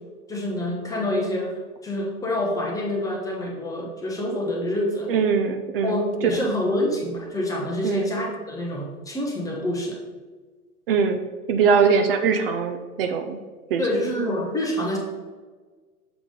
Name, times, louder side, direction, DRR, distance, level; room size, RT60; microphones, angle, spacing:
voice 1, 0.3-1.5 1.8-5.1 5.8-10.0 13.8-15.0, left 1 dB, 10° left, -1 dB, 0.6 m, -27 dB
voice 2, 5.1-6.0 7.8-8.1 10.9-11.2 11.5-13.4 13.7-13.8, right 5 dB, 40° right, 7 dB, 0.5 m, -21 dB
6.7 x 4.7 x 3.7 m, 1.4 s
hypercardioid pair, 125°, 44 cm